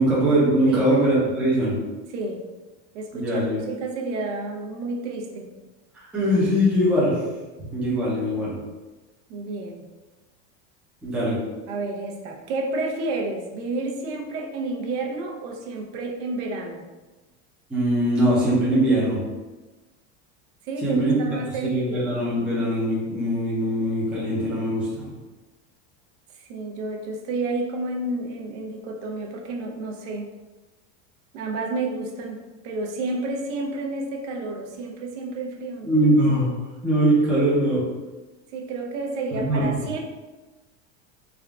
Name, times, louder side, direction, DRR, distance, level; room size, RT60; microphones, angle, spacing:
voice 1, 0.0-1.8 3.1-3.6 6.1-7.2 7.6-8.5 11.0-11.4 17.7-19.2 20.8-21.3 21.6-25.1 35.8-36.5 36.8-37.8 39.3-39.6, right 1 dB, 5° right, -8 dB, 0.4 m, -21 dB
voice 2, 2.1-2.4 2.9-5.5 9.3-9.9 11.7-16.8 20.7-22.1 26.5-30.3 31.3-35.9 38.5-40.0, right 2 dB, 80° right, 1 dB, 0.7 m, -30 dB
3.5 x 2.4 x 3.4 m, 1.2 s
cardioid pair, 180°, 36 cm